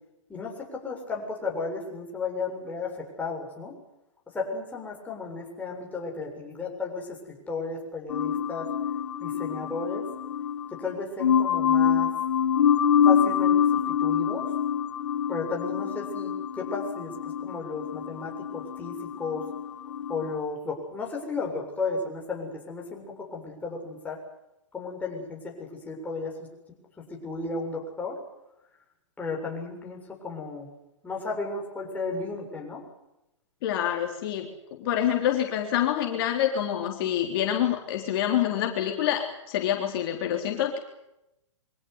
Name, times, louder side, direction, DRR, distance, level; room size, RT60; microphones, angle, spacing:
voice 1, 0.3-3.8 4.3-8.7 9.2-10.1 10.7-12.1 13.0-14.5 15.3-19.5 20.1-24.2 24.7-26.4 27.1-28.2 29.2-30.7 31.0-32.8, left 3 dB, 10° left, -1 dB, 7.2 m, -34 dB
sound 1, 8.1-20.3, left 8 dB, 65° left, 1.5 m, -26 dB
voice 2, 33.6-40.8, left 10 dB, 45° left, 2 dB, 3.7 m, -27 dB
24.5 x 17.0 x 9.7 m, 0.88 s
hypercardioid pair, 135°, 16 cm